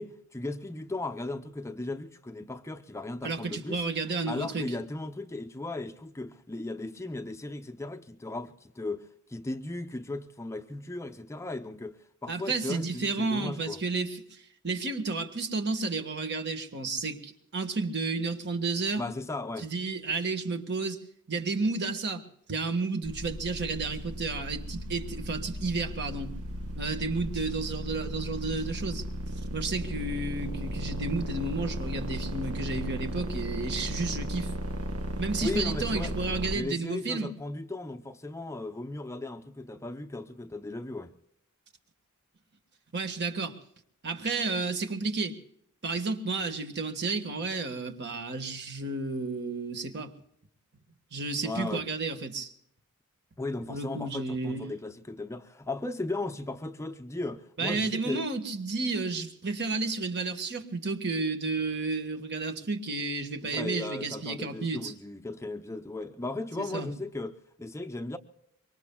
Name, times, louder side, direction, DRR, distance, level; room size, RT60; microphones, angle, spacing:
voice 1, 0.0-3.8 4.3-13.8 19.0-19.7 35.4-36.2 36.5-41.1 51.4-51.9 53.4-58.3 63.4-68.2, left 2 dB, 15° left, 0.6 m, -36 dB
voice 2, 3.2-4.7 12.3-14.2 14.6-19.0 19.6-21.0 21.3-22.2 22.5-26.3 26.8-29.0 29.5-34.5 35.2-37.3 42.9-43.6 44.0-45.4 45.8-50.1 51.1-52.5 53.7-54.7 57.6-64.9 66.6-66.9, right 3 dB, 50° right, 1.4 m, -32 dB
sound 1, 23.0-36.5, equal, 80° right, 1.4 m, -35 dB
25.5 x 23.5 x 2.3 m
head